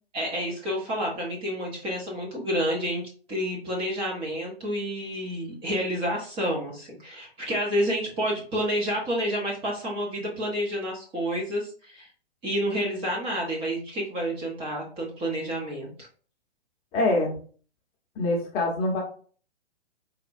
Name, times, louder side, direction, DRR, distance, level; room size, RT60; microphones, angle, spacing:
voice 1, 0.1-3.0 3.3-12.1 12.4-15.9, equal, 15° right, -3 dB, 0.8 m, -29 dB
voice 2, 16.9-17.3 18.2-19.0, left 2 dB, 25° left, -2 dB, 0.8 m, -24 dB
4.2 x 2.2 x 2.6 m, 0.43 s
figure-of-eight pair, 125°, 32 cm